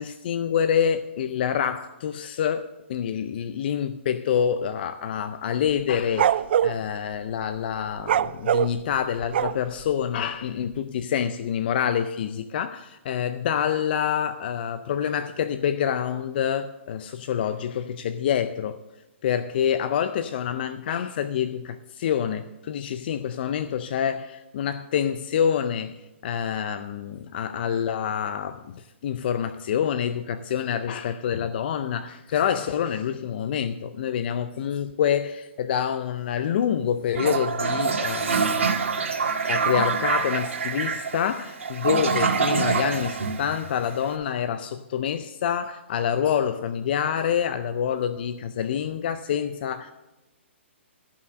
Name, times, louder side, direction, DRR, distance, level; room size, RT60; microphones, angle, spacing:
voice 1, 0.0-18.8 19.2-26.0 26.2-38.7 39.5-49.9, left 8 dB, 50° left, 0.4 m, -27 dB
sound 1, 5.7-6.8 8.0-9.8, right 10 dB, 55° right, 0.3 m, -22 dB
Toilet flush, 37.1-44.1, right 5 dB, 85° right, 1.8 m, -25 dB
13.0 x 5.7 x 6.5 m
hypercardioid pair, 150°, 7 cm